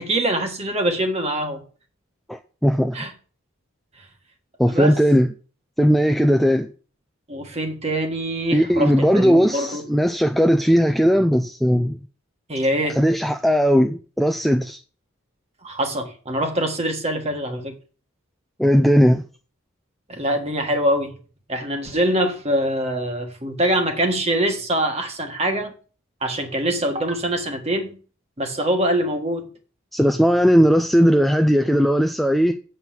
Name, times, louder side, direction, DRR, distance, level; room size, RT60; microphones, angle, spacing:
voice 1, 0.0-1.6 2.9-3.1 4.7-5.0 7.3-9.8 12.5-13.0 15.6-17.7 20.1-21.2 21.5-25.7 26.2-28.0 28.4-29.5, right 1 dB, 30° right, 1.5 m, -24 dB
voice 2, 2.3-3.0 4.6-5.3 5.8-6.7 8.5-12.0 12.9-14.8 18.6-19.2 29.9-32.5, equal, ahead, 0.4 m, -17 dB
7.9 x 5.6 x 7.3 m
head